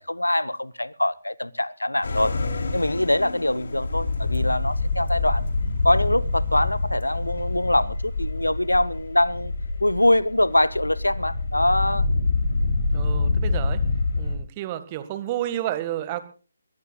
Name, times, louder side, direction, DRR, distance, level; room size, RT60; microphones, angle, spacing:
voice 1, 0.0-2.3 2.7-5.5 5.8-9.5 9.8-12.1, left 1 dB, 85° left, 0.9 m, -23 dB
sound 1, 2.0-14.4, left 3 dB, 60° left, 3.2 m, -26 dB
voice 2, 12.9-13.8 14.2-16.2, right 13 dB, 25° right, 1.7 m, -30 dB
22.5 x 20.0 x 2.4 m
figure-of-eight pair, 145°, 0 cm